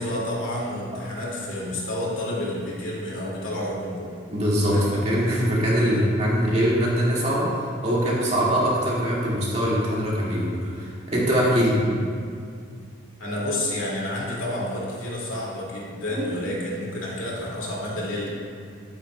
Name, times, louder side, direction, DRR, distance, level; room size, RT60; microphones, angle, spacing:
voice 1, 0.0-4.1 4.7-4.8 5.7-6.1 11.7-12.0 13.2-18.3, left 1 dB, 85° left, -5 dB, 2.3 m, -30 dB
voice 2, 4.3-11.8 16.1-16.3, equal, 35° right, -7 dB, 2.0 m, -23 dB
11.5 x 8.7 x 2.3 m, 2.2 s
head